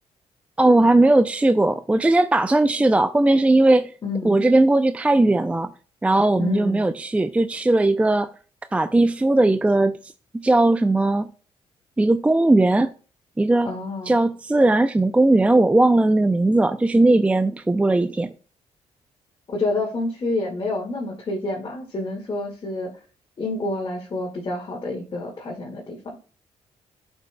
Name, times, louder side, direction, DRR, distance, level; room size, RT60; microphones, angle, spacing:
voice 1, 0.6-3.9 4.2-5.7 6.0-8.3 8.7-11.3 12.0-12.9 13.4-13.7 14.1-18.3, right 2 dB, 10° right, 0.4 m, -18 dB
voice 2, 4.0-4.4 6.4-6.9 13.6-14.2 19.5-22.9 23.4-26.2, left 2 dB, 45° left, 1.9 m, -28 dB
13.0 x 5.3 x 2.2 m
cardioid pair, 90°, 12 cm